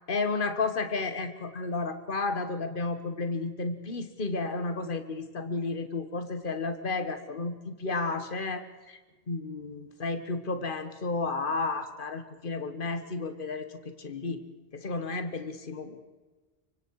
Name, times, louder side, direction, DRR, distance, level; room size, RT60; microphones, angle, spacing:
voice 1, 0.1-9.0 9.3-13.7 14.0-14.4 14.7-16.0, left 3 dB, 55° left, 9 dB, 1.7 m, -32 dB
25.0 x 24.5 x 4.9 m, 1.3 s
omnidirectional pair, 1.1 m